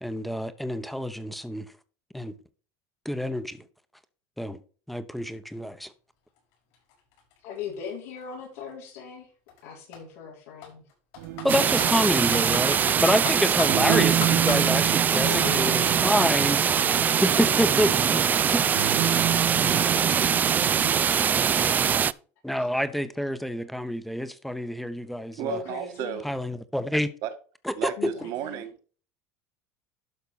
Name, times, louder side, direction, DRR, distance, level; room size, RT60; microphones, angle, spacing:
voice 1, 0.0-1.7 2.1-2.3 3.0-3.6 4.4-4.6 4.9-5.9 11.4-16.6 17.2-18.2 18.5-18.6 19.1-19.2 22.4-25.6 26.2-27.1 27.6-27.9, equal, ahead, 0.9 m, -27 dB
Computer keyboard, 6.4-6.5 6.7-8.7 9.5-9.6 9.9-10.0 10.6-11.9 12.3-14.6, left 8 dB, 75° left, 5.9 m, -36 dB
voice 2, 7.4-9.3 9.6-10.8 15.1-22.1 25.5-26.2 28.0-28.6, left 7 dB, 90° left, 4.1 m, -39 dB
sound 1, 11.2-21.0, right 11 dB, 85° right, 1.6 m, -31 dB
sound 2, 11.5-22.1, right 8 dB, 25° right, 0.3 m, -23 dB
voice 3, 25.4-26.2 27.2-27.3 27.8-28.9, right 11 dB, 60° right, 1.6 m, -33 dB
12.0 x 5.7 x 4.1 m
cardioid pair, 135°, 7 cm